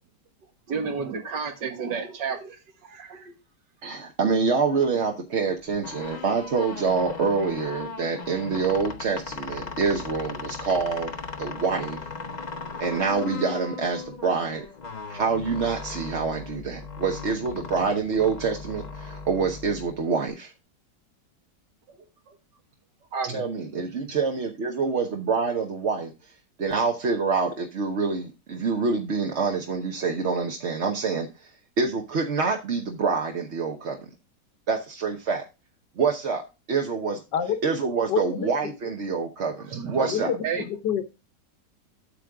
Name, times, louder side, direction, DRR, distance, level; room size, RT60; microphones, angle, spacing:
voice 1, 0.7-3.3 23.1-23.4 39.7-40.7, right 5 dB, 75° right, 6 dB, 2.1 m, -31 dB
voice 2, 3.8-11.1 11.4-12.0 12.8-14.6 15.1-20.5 23.3-26.1 26.6-31.3 31.8-34.0 34.7-35.4 36.0-36.4 36.7-37.2 37.6-40.3, right 5 dB, 45° right, 3 dB, 1.0 m, -26 dB
sound 1, 5.7-20.3, left 4 dB, 35° left, 0.7 m, -38 dB
voice 3, 38.1-38.5 40.1-41.0, left 8 dB, 75° left, 10 dB, 1.7 m, -27 dB
8.5 x 7.7 x 3.5 m, 0.27 s
omnidirectional pair, 1.9 m